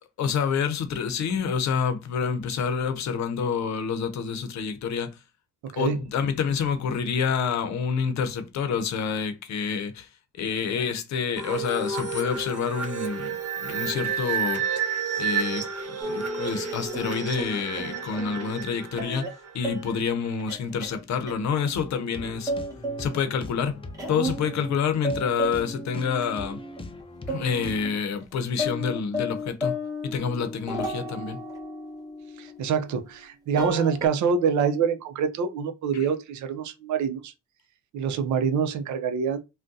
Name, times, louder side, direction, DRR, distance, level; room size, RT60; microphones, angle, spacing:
voice 1, 0.2-5.2 5.8-10.1 10.4-14.6 15.2-15.7 16.0-19.3 19.5-22.5 23.0-23.8 24.1-26.6 27.3-29.8 30.0-31.4 35.9-36.1, left 6 dB, 65° left, 0.7 m, -28 dB
sound 1, 11.4-20.0, right 6 dB, 50° right, 1.1 m, -31 dB
sound 2, 16.0-18.6 18.9-19.3 19.6-20.0 20.4-21.7 22.0-23.4 23.7-24.8 25.0-27.0 27.3-27.9 28.2-28.3 28.6-33.3 33.6-34.1, equal, 10° right, 1.1 m, -34 dB
sound 3, 21.7-28.0, left 3 dB, 20° left, 0.5 m, -42 dB
voice 2, 32.4-37.3 37.9-39.4, right 6 dB, 70° right, 0.6 m, -25 dB
3.6 x 2.2 x 2.6 m
cardioid pair, 90°, 30 cm